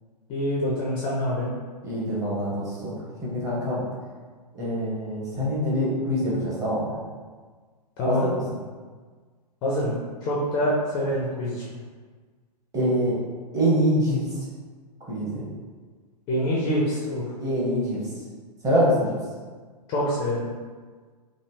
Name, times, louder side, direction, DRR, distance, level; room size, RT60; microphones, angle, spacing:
voice 1, 0.3-1.5 8.0-8.3 9.6-9.9 10.2-11.6 16.3-17.2 19.9-20.4, equal, 20° left, -5 dB, 0.4 m, -25 dB
voice 2, 1.8-2.9 3.2-3.8 4.5-6.9 8.1-8.4 12.7-13.1 13.5-14.2 15.1-15.4 17.4-18.0 18.6-19.2, equal, 15° right, -7 dB, 0.9 m, -24 dB
3.2 x 2.5 x 2.7 m, 1.5 s
figure-of-eight pair, 110°, 21 cm